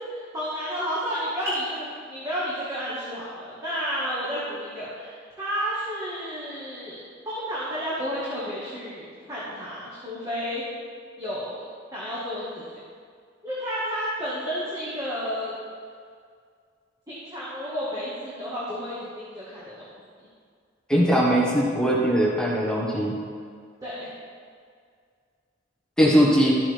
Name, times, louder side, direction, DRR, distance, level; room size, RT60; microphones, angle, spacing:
voice 1, 0.1-10.6 11.2-11.6 11.9-12.8 13.4-15.6 17.1-19.9 23.8-24.1, equal, 20° right, -9 dB, 1.7 m, -31 dB
voice 2, 20.9-23.2 26.0-26.5, equal, 5° left, -4 dB, 1.4 m, -20 dB
13.0 x 7.2 x 3.5 m, 2.1 s
head